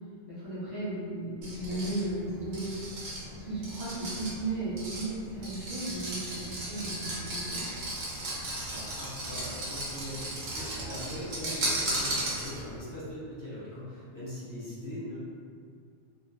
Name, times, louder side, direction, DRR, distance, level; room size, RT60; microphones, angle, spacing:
voice 1, 0.3-2.7 3.3-7.6, right 2 dB, 20° right, -12 dB, 0.8 m, -35 dB
sound 1, 1.4-12.8, right 1 dB, 65° right, 0.8 m, -36 dB
voice 2, 8.4-15.2, equal, 20° left, -11 dB, 0.6 m, -41 dB
2.5 x 2.4 x 2.3 m, 2.2 s
omnidirectional pair, 1.2 m